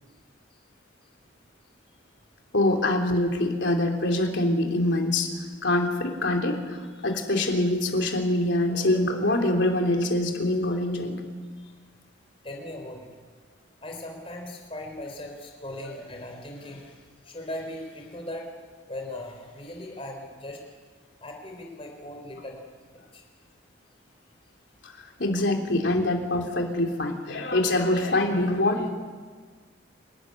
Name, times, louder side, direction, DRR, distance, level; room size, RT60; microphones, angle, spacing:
voice 1, 2.5-5.3 5.6-11.2 25.2-28.9, left 1 dB, 70° left, 2 dB, 3.3 m, -24 dB
voice 2, 12.4-13.1 13.8-18.5 18.9-20.6 21.2-22.6 22.9-23.2, left 1 dB, 30° left, 1 dB, 3.9 m, -39 dB
28.5 x 13.0 x 9.6 m, 1.5 s
head